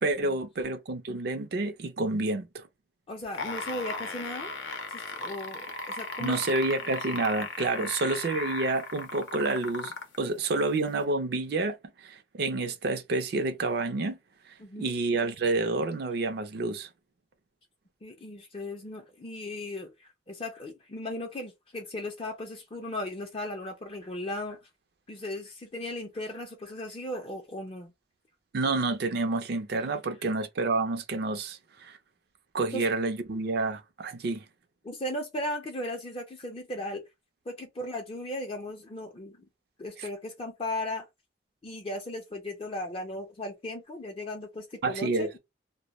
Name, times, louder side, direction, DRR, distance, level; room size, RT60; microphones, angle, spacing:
voice 1, 0.0-2.6 6.2-11.8 12.0-14.2 14.8-16.9 28.5-32.0 32.5-34.4 40.0-40.1 44.8-45.3, right 3 dB, 60° right, 0.4 m, -29 dB
voice 2, 3.1-4.5 4.9-6.4 7.8-7.9 14.6-15.0 18.0-24.6 25.1-27.9 32.7-32.9 34.8-37.0 37.5-39.5 39.8-41.1 41.6-45.3, left 1 dB, 30° left, 0.4 m, -37 dB
sound 1, 3.2-10.2 11.0-11.1, left 3 dB, 85° left, 0.6 m, -36 dB
2.2 x 2.1 x 2.9 m
head